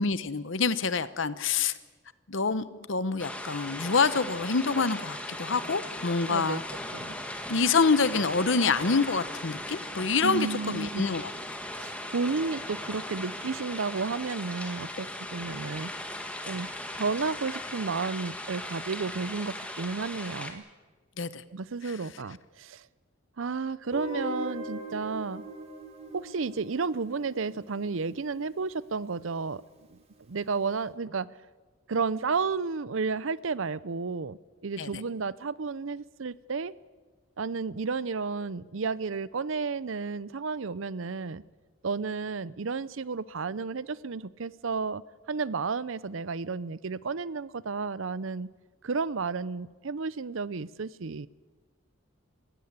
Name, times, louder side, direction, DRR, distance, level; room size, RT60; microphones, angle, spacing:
voice 1, 0.0-1.7 2.3-6.6 7.5-11.3 21.2-21.4 34.8-34.9, left 4 dB, 65° left, 15 dB, 0.9 m, -26 dB
sound 1, 3.2-20.5, left 1 dB, 5° left, 1.7 m, -38 dB
voice 2, 6.3-6.6 6.9-7.2 10.2-11.2 11.7-15.9 16.5-20.6 21.5-22.8 23.4-25.4 26.1-29.6 29.9-30.0 30.3-31.3 31.9-36.7 37.4-41.4 41.8-45.0 45.3-48.5 48.8-51.3, right 4 dB, 70° right, 19 dB, 0.6 m, -32 dB
Guitar, 23.9-28.8, equal, 30° right, 2.7 m, -40 dB
20.5 x 16.0 x 9.6 m, 1.3 s
head